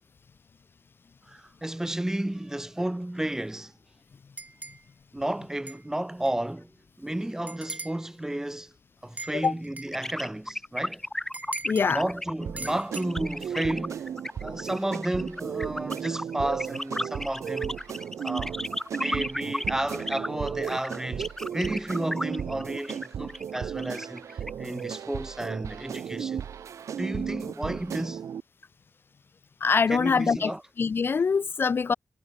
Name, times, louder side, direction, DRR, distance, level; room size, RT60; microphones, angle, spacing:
voice 1, 1.3-3.7 5.1-6.7 7.0-8.7 9.0-11.0 11.9-14.1 14.4-17.8 18.2-18.6 18.9-26.5 27.0-28.2 29.9-30.6, right 1 dB, 10° right, 1.5 m, -32 dB
sound 1, 4.4-4.8 5.7-5.8 6.2-6.3 7.5-8.0 9.2-10.0 11.3-11.9 12.6-13.0, right 3 dB, 30° right, 3.7 m, -39 dB
sound 2, 9.9-24.9, left 1 dB, 10° left, 3.3 m, -34 dB
voice 2, 11.6-12.0 29.6-30.5 30.8-31.9, left 5 dB, 45° left, 0.5 m, -24 dB
sound 3, 12.4-28.4, right 8 dB, 75° right, 0.9 m, -35 dB
wide cardioid pair, 100°, 5 cm